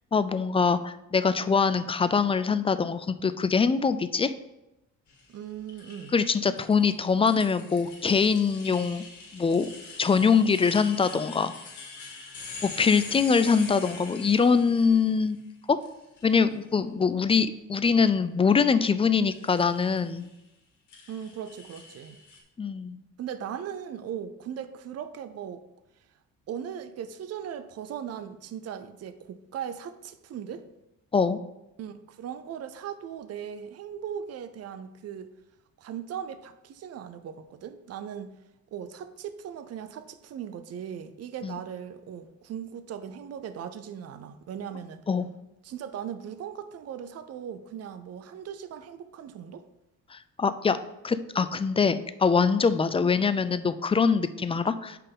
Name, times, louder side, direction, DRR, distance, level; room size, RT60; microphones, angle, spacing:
voice 1, 0.1-4.3 6.1-9.1 9.3-9.7 10.0-11.5 12.6-15.4 15.7-15.8 16.2-20.3 22.6-23.0 31.1-31.4 41.4-41.6 45.1-45.3 50.1-50.8 51.0-55.0, left 5 dB, 20° left, 13 dB, 0.3 m, -23 dB
sound 1, 5.1-15.4 15.8-16.5 19.3-20.3 20.9-22.4, left 4 dB, 70° left, 1.7 m, -44 dB
voice 2, 5.3-6.2 21.1-22.2 23.2-25.6 26.5-30.7 31.8-35.3 35.8-38.4 38.7-45.0 45.6-49.6, right 8 dB, 55° right, 11 dB, 0.6 m, -38 dB
5.5 x 4.1 x 5.4 m, 0.90 s
cardioid pair, 90°, 30 cm